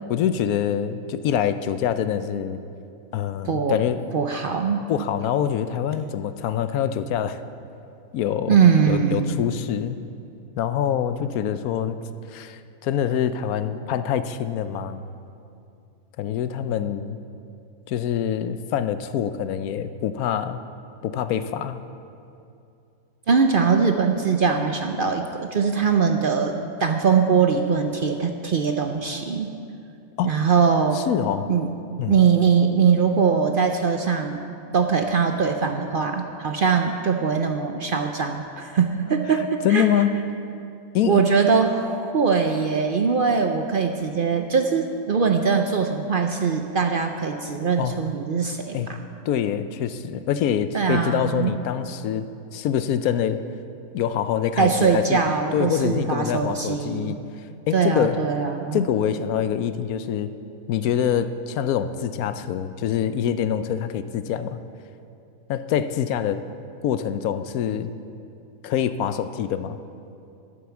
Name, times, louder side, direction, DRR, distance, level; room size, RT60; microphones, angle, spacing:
voice 1, 0.1-2.6 3.1-4.0 4.9-7.4 8.1-8.6 8.9-10.0 10.6-12.0 12.3-15.0 16.2-17.2 17.9-20.6 21.0-21.8 30.2-30.3 30.9-31.5 32.0-32.2 39.4-40.1 40.9-41.2 47.8-48.0 48.7-48.9 49.2-52.3 52.5-53.4 53.9-55.2 55.5-57.2 57.7-58.2 58.7-60.3 60.7-64.6 65.5-66.4 66.8-67.9 68.6-69.8, left 9 dB, 90° left, 11 dB, 1.1 m, -25 dB
voice 2, 3.5-3.8 4.1-4.9 8.5-9.4 23.3-29.6 30.2-31.0 31.5-31.7 32.1-34.4 34.7-39.9 41.0-48.7 50.7-51.5 54.6-57.1 57.7-58.9, right 6 dB, 55° right, 5 dB, 0.6 m, -21 dB
11.5 x 9.3 x 7.1 m, 2.6 s
omnidirectional pair, 1.5 m